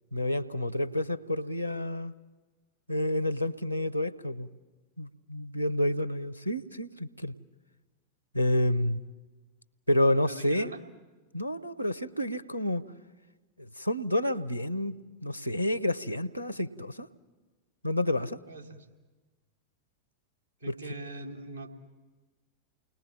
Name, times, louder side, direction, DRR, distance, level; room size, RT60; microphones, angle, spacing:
voice 1, 0.1-2.1 2.9-4.5 5.0-7.3 8.3-9.0 9.9-10.7 11.3-12.8 13.6-14.9 15.2-17.1 17.8-18.4, left 1 dB, 90° left, 13 dB, 1.0 m, -29 dB
voice 2, 10.1-10.8 18.5-18.9 20.6-21.7, right 2 dB, 90° right, 2 dB, 3.6 m, -42 dB
29.5 x 20.5 x 7.4 m, 1.2 s
figure-of-eight pair, 90°, 0 cm